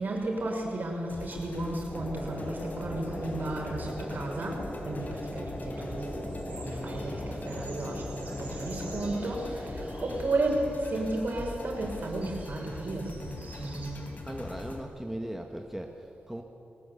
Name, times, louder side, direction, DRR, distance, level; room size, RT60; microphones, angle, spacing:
voice 1, 0.0-14.1, right 2 dB, 55° right, 0 dB, 6.1 m, -33 dB
sound 1, 1.1-14.8, left 2 dB, 45° left, 3.8 m, -43 dB
sound 2, 1.9-10.2, left 1 dB, 25° left, 3.0 m, -39 dB
sound 3, 3.1-13.9, right 2 dB, 40° right, 7.2 m, -51 dB
voice 2, 14.3-16.4, right 1 dB, 5° right, 3 dB, 1.7 m, -38 dB
22.0 x 19.5 x 8.5 m, 2.8 s
wide cardioid pair, 100°, 4 cm